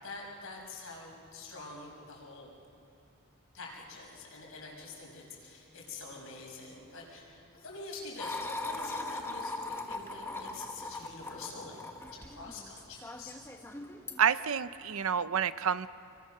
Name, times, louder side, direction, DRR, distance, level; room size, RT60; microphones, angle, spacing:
voice 1, 0.0-2.5 3.5-13.3, left 3 dB, 70° left, -1 dB, 6.1 m, -46 dB
sound 1, 8.2-14.2, left 2 dB, 10° left, 1.3 m, -40 dB
voice 2, 14.2-15.9, right 7 dB, 65° right, 14 dB, 0.7 m, -28 dB
29.5 x 22.5 x 6.7 m, 2.6 s
head